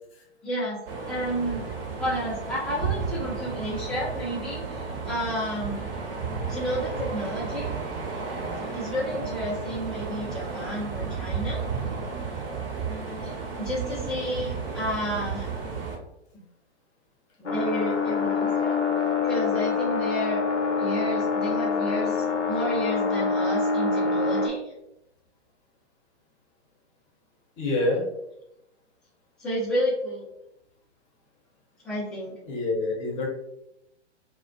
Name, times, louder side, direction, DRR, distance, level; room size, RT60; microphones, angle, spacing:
voice 1, 0.4-0.8 1.1-1.6 2.0-5.9 6.5-7.7 8.7-11.6 13.2-15.5 17.4-18.8 19.2-20.4 20.8-24.7 29.4-30.3 31.8-32.4, equal, ahead, -16 dB, 0.3 m, -31 dB
sound 1, 0.9-16.0, right 5 dB, 55° right, 0.7 m, -33 dB
sound 2, 17.5-24.5, left 4 dB, 90° left, 0.6 m, -25 dB
voice 2, 27.6-28.0 32.4-33.3, left 2 dB, 30° left, -2 dB, 0.7 m, -26 dB
2.3 x 2.1 x 2.5 m, 0.84 s
figure-of-eight pair, 125°, 35 cm